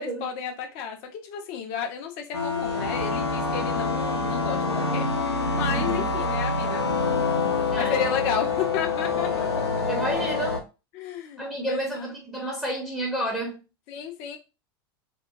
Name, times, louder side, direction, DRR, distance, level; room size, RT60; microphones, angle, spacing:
voice 1, 0.0-5.1 5.5-6.8 7.7-9.7 10.9-12.1 13.9-14.4, left 7 dB, 45° left, 0.6 m, -32 dB
sound 1, 2.3-10.6, left 4 dB, 85° left, 0.6 m, -26 dB
voice 2, 5.7-6.1 7.7-8.1 9.9-10.6 11.4-13.6, right 1 dB, 5° right, 0.7 m, -30 dB
2.8 x 2.2 x 2.4 m
figure-of-eight pair, 85°, 13 cm